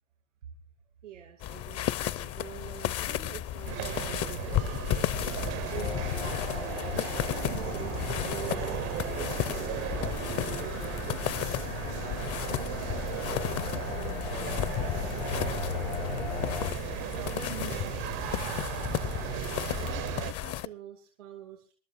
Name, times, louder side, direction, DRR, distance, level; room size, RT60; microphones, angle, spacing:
voice 1, 1.0-4.7 5.2-6.4 6.9-8.8 9.5-11.7 12.4-16.5 17.1-18.0 19.8-21.7, right 10 dB, 90° right, 3 dB, 2.5 m, -46 dB
sound 1, 1.4-20.7, left 12 dB, 40° left, 0.6 m, -34 dB
sound 2, 3.6-20.3, right 18 dB, 60° right, 0.6 m, -36 dB
sound 3, 5.7-16.7, left 7 dB, 80° left, 4.9 m, -39 dB
27.5 x 12.0 x 2.5 m, 0.37 s
hypercardioid pair, 75°, 36 cm